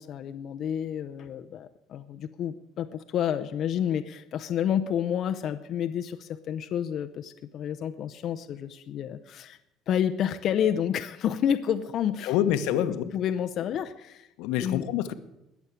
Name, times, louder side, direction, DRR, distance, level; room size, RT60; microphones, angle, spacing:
voice 1, 0.0-9.6 9.9-12.3 12.9-14.3 14.6-14.9, left 9 dB, 40° left, 8 dB, 0.6 m, -29 dB
voice 2, 12.2-13.0 14.4-15.1, left 11 dB, 80° left, 10 dB, 1.1 m, -26 dB
20.5 x 7.2 x 8.2 m, 0.88 s
cardioid pair, 165°, 0 cm